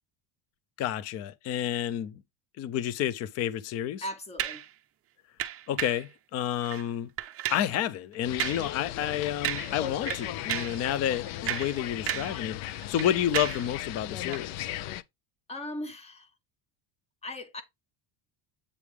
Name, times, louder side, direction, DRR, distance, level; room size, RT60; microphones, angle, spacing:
voice 1, 0.8-2.1 2.6-4.0 5.7-7.1 7.5-14.7, left 11 dB, 35° left, 0.4 m, -30 dB
voice 2, 4.0-4.6 15.5-16.3 17.2-17.6, left 1 dB, 15° left, 0.9 m, -38 dB
sound 1, 4.4-4.7 5.4-6.1 6.6-6.9 7.2-7.7 8.4-8.7 9.0-9.1 9.4-9.8 10.1-10.8 11.3-12.4 12.7-13.7 14.3-14.5, right 12 dB, 30° right, 0.5 m, -33 dB
sound 2, 8.2-15.0, left 13 dB, 70° left, 0.7 m, -37 dB
8.4 x 3.4 x 4.7 m
cardioid pair, 170°, 50 cm